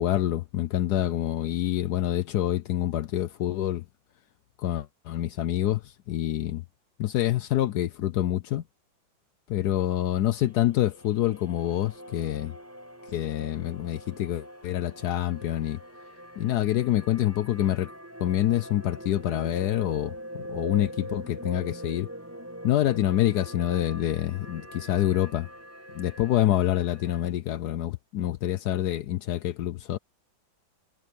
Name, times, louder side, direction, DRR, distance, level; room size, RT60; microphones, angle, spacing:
voice 1, 0.0-3.8 4.6-5.8 6.1-6.6 7.0-8.6 9.5-12.5 13.1-15.8 16.4-17.9 18.2-22.1 22.6-25.5 25.9-30.0, left 13 dB, 70° left, 0.9 m, -26 dB
sound 1, 10.4-27.3, equal, 5° right, 5.8 m, -43 dB
omnidirectional pair, 2.3 m